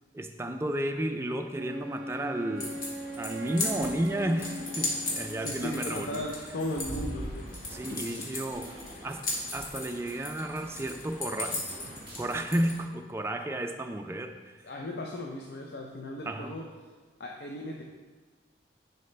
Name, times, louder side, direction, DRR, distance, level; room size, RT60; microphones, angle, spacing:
voice 1, 0.1-2.8 3.2-6.2 7.7-9.2 9.5-11.6 12.2-14.6 16.3-16.5, right 1 dB, 15° right, 5 dB, 0.3 m, -32 dB
Wind instrument woodwind instrument, 1.5-5.9, equal, 70° right, 0.5 m, -40 dB
sound 1, 2.6-12.8, left 2 dB, 45° left, 1.5 m, -37 dB
sound 2, 4.6-6.0 6.6-10.0 10.3-10.4 10.6-12.6, right 1 dB, 30° right, 1.4 m, -51 dB
voice 2, 5.4-7.5 7.9-8.3 14.6-16.9 17.2-17.8, left 1 dB, 60° left, 0 dB, 0.5 m, -37 dB
10.5 x 4.2 x 3.3 m, 1.4 s
head